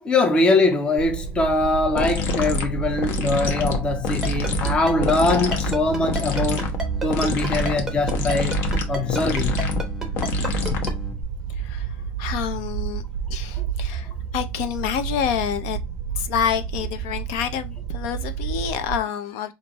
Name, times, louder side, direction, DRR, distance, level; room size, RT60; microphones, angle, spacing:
voice 1, 0.0-6.7 7.0-8.6 8.9-9.5 13.6-13.7, left 2 dB, 20° left, 0.7 m, -22 dB
sound 1, 1.0-19.0, right 8 dB, 55° right, 0.4 m, -30 dB
sound 2, 2.0-11.2, left 4 dB, 50° left, 0.9 m, -27 dB
Ringtone, 4.2-10.9, right 1 dB, 5° right, 0.9 m, -30 dB
voice 2, 11.5-13.0 13.3-15.8 16.2-19.5, left 9 dB, 85° left, 0.6 m, -28 dB
5.2 x 2.6 x 2.9 m
cardioid pair, 165°, 5 cm